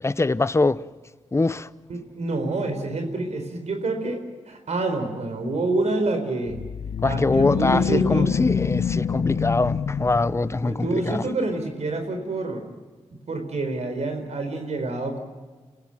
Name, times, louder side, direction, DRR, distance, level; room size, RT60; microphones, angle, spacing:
voice 1, 0.0-0.8 1.3-1.7 7.0-11.2, left 3 dB, 25° left, 0.7 m, -23 dB
voice 2, 1.9-6.6 7.0-8.3 10.6-12.6 13.3-15.2, right 2 dB, 70° right, 4.4 m, -27 dB
sound 1, 6.5-10.9, left 6 dB, 75° left, 0.8 m, -26 dB
29.5 x 16.5 x 9.0 m
cardioid pair, 65°, 12 cm